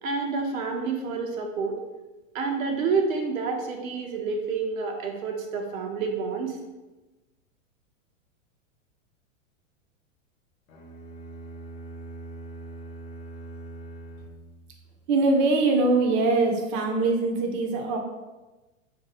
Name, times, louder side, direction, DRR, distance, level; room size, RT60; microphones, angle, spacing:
voice 1, 0.0-1.8 2.3-6.6, right 4 dB, 90° right, 2 dB, 0.7 m, -28 dB
sound 1, 10.7-15.1, right 2 dB, 80° left, 0.9 m, -42 dB
voice 2, 15.1-18.0, right 3 dB, 45° right, 2 dB, 0.6 m, -22 dB
2.6 x 2.3 x 4.1 m, 1.1 s
hypercardioid pair, 125°, 40 cm